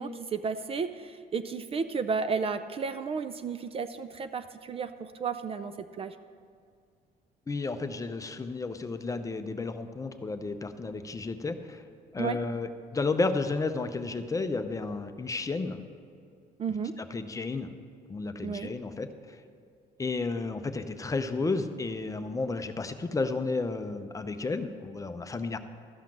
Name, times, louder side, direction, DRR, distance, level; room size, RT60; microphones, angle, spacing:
voice 1, 0.0-6.2 12.2-12.4 16.6-17.0 18.4-18.7, right 5 dB, 35° right, 11 dB, 0.4 m, -33 dB
voice 2, 7.5-11.8 12.1-15.8 17.0-17.7 18.1-19.4 20.0-25.6, left 3 dB, 20° left, 8 dB, 0.6 m, -32 dB
13.0 x 5.7 x 7.5 m, 2.3 s
cardioid pair, 110°, 17 cm